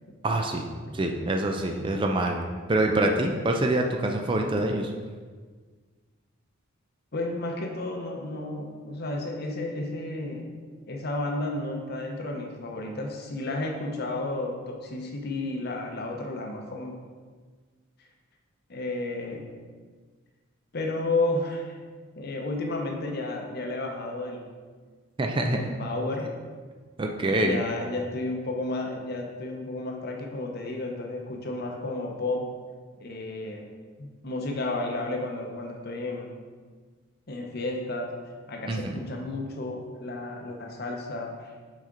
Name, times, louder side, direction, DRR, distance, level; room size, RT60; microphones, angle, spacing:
voice 1, 0.2-0.6 0.9-4.9 25.2-25.7 27.0-27.6 38.7-38.9, right 1 dB, 25° right, 3 dB, 0.4 m, -25 dB
voice 2, 7.1-10.5 10.9-16.9 18.7-19.5 20.7-21.8 22.2-24.5 25.5-26.3 27.4-32.5 33.0-33.7 34.0-36.3 37.3-38.1 38.5-41.5, left 2 dB, 50° left, 2 dB, 0.8 m, -32 dB
6.0 x 4.3 x 3.8 m, 1.5 s
head